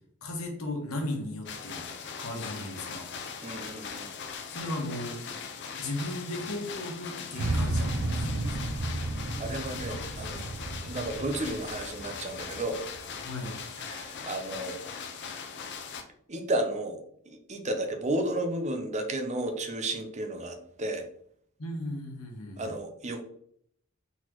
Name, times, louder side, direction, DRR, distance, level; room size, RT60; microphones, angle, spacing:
voice 1, 0.2-1.8 2.2-3.1 4.5-5.2 5.8-8.7 13.2-13.5 21.6-22.7, left 1 dB, 85° left, 2 dB, 1.2 m, -36 dB
sound 1, 1.5-16.0, left 6 dB, 55° left, 0.6 m, -40 dB
voice 2, 3.4-4.1 9.4-10.5 10.8-12.8 13.8-14.7 16.3-17.0 17.3-21.0 22.6-23.2, right 1 dB, 35° right, 5 dB, 0.6 m, -33 dB
sound 2, 7.3-13.5, right 2 dB, 90° right, 0.5 m, -33 dB
4.2 x 4.0 x 3.0 m, 0.66 s
head